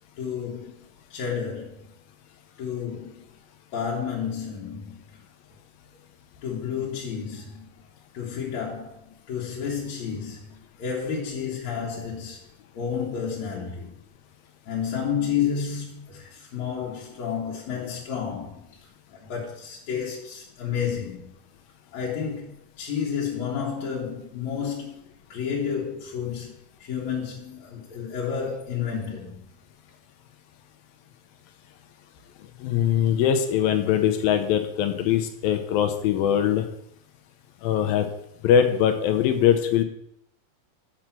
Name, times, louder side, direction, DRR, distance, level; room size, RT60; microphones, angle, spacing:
voice 1, 0.2-0.8 1.1-1.8 2.6-3.2 3.7-5.1 6.4-7.7 8.1-12.4 12.7-13.9 14.7-18.6 19.3-21.3 21.9-24.9 25.3-26.5 26.8-29.4, left 7 dB, 55° left, 2.4 m, -31 dB
voice 2, 32.6-36.7 37.6-38.1 38.4-39.8, left 9 dB, 80° left, 2.6 m, -22 dB
7.4 x 6.5 x 6.0 m
omnidirectional pair, 4.2 m